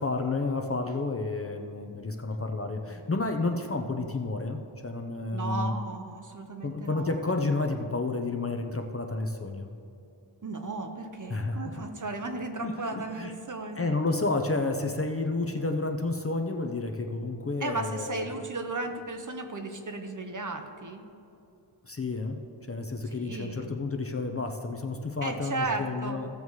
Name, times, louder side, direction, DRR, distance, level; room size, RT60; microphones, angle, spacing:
voice 1, 0.0-5.7 6.6-9.7 11.3-11.8 12.6-13.3 13.8-18.3 21.8-22.4 22.7-26.3, left 3 dB, 30° left, 4 dB, 0.6 m, -31 dB
voice 2, 5.3-7.2 10.4-13.9 17.6-21.0 23.1-23.7 25.2-26.2, right 2 dB, 40° right, 5 dB, 0.9 m, -35 dB
16.0 x 7.0 x 3.2 m, 2.6 s
wide cardioid pair, 105°, 47 cm